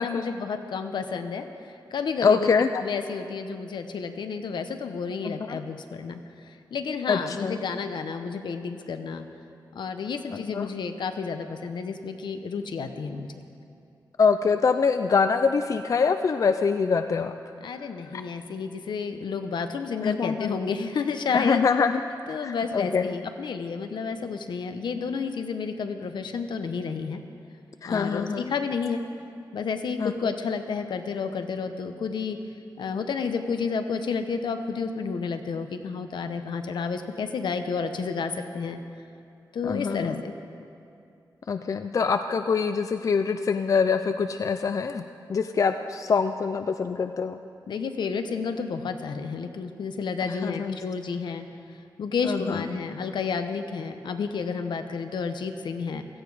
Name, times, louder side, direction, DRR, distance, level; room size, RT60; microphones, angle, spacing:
voice 1, 0.0-1.5 1.9-2.5 2.7-6.2 6.7-9.3 9.7-13.4 17.6-21.7 22.3-27.2 27.9-29.0 29.5-32.4 32.8-38.8 39.5-40.3 47.7-51.5 52.0-56.1, left 5 dB, 80° left, 7 dB, 0.9 m, -31 dB
voice 2, 2.2-2.7 5.2-5.6 7.1-7.6 10.3-10.7 14.2-17.3 18.1-18.2 20.0-20.5 21.3-23.1 27.8-28.5 30.0-30.1 39.6-40.2 41.5-47.4 50.3-50.8 52.2-52.7, left 5 dB, 45° left, 8 dB, 0.4 m, -25 dB
16.5 x 14.5 x 4.9 m, 2.5 s
wide cardioid pair, 145°, 8 cm